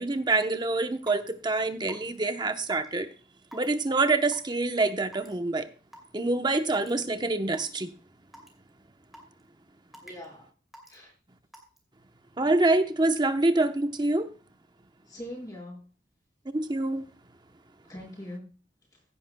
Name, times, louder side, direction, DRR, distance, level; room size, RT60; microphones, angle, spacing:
voice 1, 0.0-3.1 3.5-5.7 6.1-7.9 12.4-14.3 16.5-17.0, right 2 dB, 25° right, 0.9 m, -26 dB
Raindrop / Water tap faucet / Drip, 1.0-1.3 1.9-2.2 2.7-2.9 3.5-3.7 4.3-4.6 5.1-5.3 5.9-6.0 6.7-6.9 7.5-7.7 8.3-8.5 9.1-9.4 9.9-10.2 10.7-10.9 11.5-11.8, equal, ahead, 2.6 m, -47 dB
voice 2, 10.0-10.5 10.9-11.1 15.1-15.9 17.9-18.5, left 1 dB, 20° left, 5.6 m, -42 dB
16.0 x 9.9 x 2.2 m
head